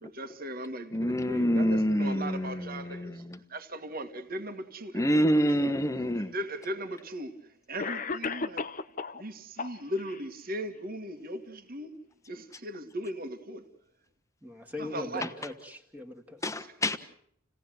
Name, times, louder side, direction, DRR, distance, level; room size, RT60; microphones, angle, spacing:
voice 1, 0.0-3.2 3.5-5.7 6.1-8.7 9.1-12.0 12.3-13.7 14.8-15.3, right 1 dB, 45° right, 2.1 m, -38 dB
voice 2, 0.9-3.4 4.9-6.3 16.4-17.0, equal, 15° left, 1.3 m, -27 dB
Cough, 6.1-6.2 7.2-7.3 7.8-9.2 9.6-10.2, left 4 dB, 40° left, 1.0 m, -34 dB
voice 3, 14.4-16.4, left 2 dB, 10° right, 2.1 m, -40 dB
29.0 x 17.5 x 7.9 m
head